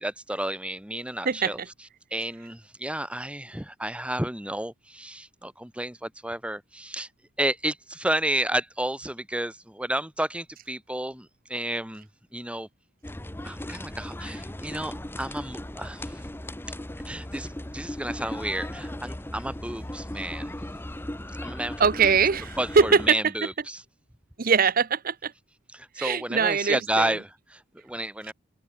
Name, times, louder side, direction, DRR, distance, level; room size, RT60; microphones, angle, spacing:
voice 1, 0.0-1.6 2.1-7.1 7.4-12.1 12.3-12.7 13.4-16.2 17.1-17.5 17.7-20.5 21.4-22.1 22.6-23.8 25.7-28.3, right 1 dB, 5° right, 1.8 m, -31 dB
sound 1, 13.0-23.1, left 1 dB, 10° left, 0.9 m, -37 dB
voice 2, 21.8-23.2 24.4-25.3 26.0-27.1, right 5 dB, 45° right, 0.7 m, -22 dB
open air
head